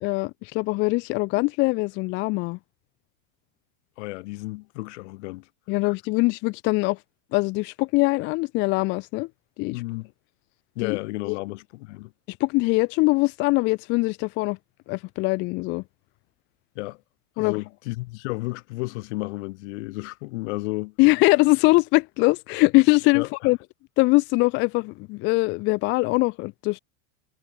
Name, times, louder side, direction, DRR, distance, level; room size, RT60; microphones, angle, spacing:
voice 1, 0.0-2.6 5.7-7.0 7.3-9.3 9.6-9.8 10.8-11.0 11.2-11.4 12.4-14.6 14.9-15.8 17.4-17.6 21.0-23.6 24.0-26.8, left 24 dB, 30° left, 0.5 m, -22 dB
voice 2, 4.0-5.5 9.7-10.1 10.8-12.1 16.8-17.0 17.4-20.9 23.1-23.3, left 23 dB, 60° left, 6.0 m, -32 dB
supercardioid pair, 165°, 39 cm